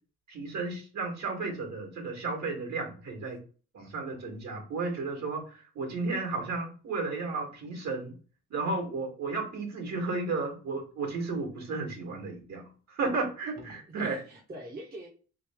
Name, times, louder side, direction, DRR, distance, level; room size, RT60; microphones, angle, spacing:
voice 1, 0.3-3.4 3.7-8.2 8.5-14.2, right 3 dB, 60° right, 2 dB, 1.7 m, -33 dB
voice 2, 13.6-15.1, right 1 dB, 30° right, -1 dB, 1.0 m, -44 dB
3.4 x 2.7 x 3.4 m, 0.39 s
cardioid pair, 90°, 30 cm